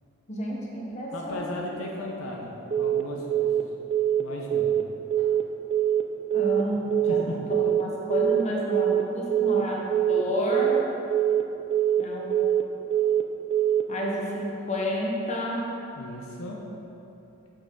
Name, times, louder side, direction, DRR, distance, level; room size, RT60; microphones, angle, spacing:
voice 1, 0.3-1.5 6.3-9.8 10.1-10.8 12.0-12.4 13.9-15.7, equal, 35° left, -3 dB, 1.0 m, -30 dB
voice 2, 1.1-3.5 4.2-4.7 6.7-6.8 7.1-7.3 16.0-16.6, left 1 dB, 75° left, -1 dB, 0.7 m, -36 dB
Telephone, 2.7-3.0 3.3-3.6 3.9-4.2 4.5-4.8 5.1-5.4 5.7-6.0 6.3-6.6 6.9-7.2 7.5-7.8 8.1-8.4 8.7-9.0 9.3-9.6 9.9-10.2 10.5-10.8 11.1-11.4 11.7-12.0 12.3-12.6 12.9-13.2 13.5-13.8, right 10 dB, 30° right, 0.3 m, -23 dB
6.5 x 5.8 x 3.7 m, 2.9 s
head